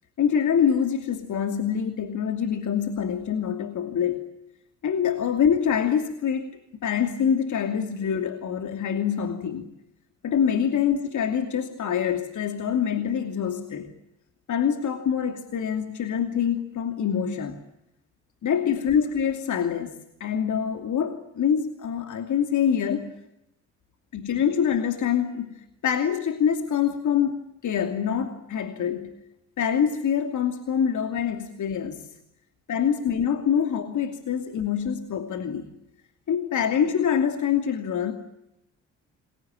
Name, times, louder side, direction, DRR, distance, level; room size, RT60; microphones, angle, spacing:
voice 1, 0.2-4.2 4.8-9.7 10.2-13.9 14.5-17.6 18.4-23.1 24.1-29.1 29.6-32.1 32.7-35.7 36.3-38.1, left 8 dB, 50° left, 6 dB, 2.8 m, -25 dB
29.0 x 22.0 x 9.0 m, 0.85 s
hypercardioid pair, 50°, 37 cm